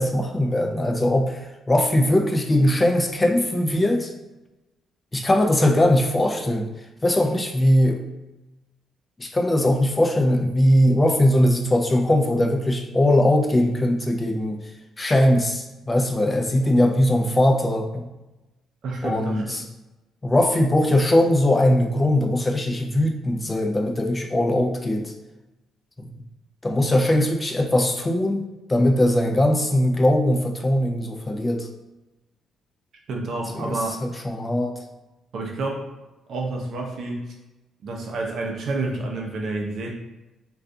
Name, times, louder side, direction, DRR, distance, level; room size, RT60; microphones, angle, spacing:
voice 1, 0.0-4.1 5.1-6.7 7.0-8.0 9.2-14.6 15.0-18.0 19.0-19.6 20.2-25.1 26.0-26.1 26.6-31.7 33.5-34.8, left 1 dB, 20° left, 3 dB, 0.4 m, -20 dB
voice 2, 18.8-19.6 33.1-34.0 35.3-35.9 36.3-37.3 37.8-39.9, right 2 dB, 65° right, 0 dB, 0.5 m, -29 dB
2.3 x 2.3 x 2.6 m, 1.0 s
cardioid pair, 90°, 0 cm